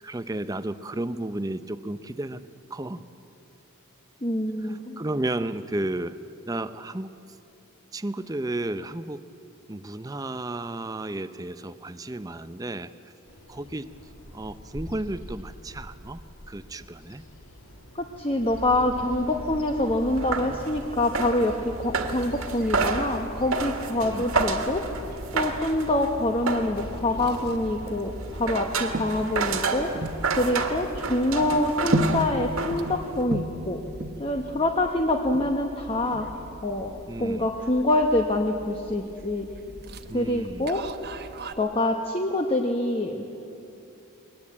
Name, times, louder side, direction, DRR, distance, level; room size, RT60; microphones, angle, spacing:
voice 1, 0.0-2.4 2.7-3.0 4.6-6.2 6.5-7.1 7.9-9.2 9.7-12.9 13.5-13.9 14.3-16.2 16.5-17.2 24.0-24.2 37.1-37.5 40.1-40.7, right 1 dB, 15° right, 12 dB, 0.5 m, -33 dB
voice 2, 4.2-5.0 18.0-24.8 25.3-29.9 30.4-33.8 34.2-36.3 36.6-39.5 40.1-40.8 41.6-43.2, left 1 dB, 25° left, 3 dB, 1.0 m, -26 dB
Bird vocalization bird call bird song, 13.3-29.7, equal, 75° left, 2.6 m, -48 dB
sound 1, 18.4-33.2, right 3 dB, 80° right, 1.9 m, -31 dB
sound 2, 21.8-41.5, right 1 dB, 45° right, 1.0 m, -37 dB
22.0 x 19.5 x 8.5 m, 2.8 s
head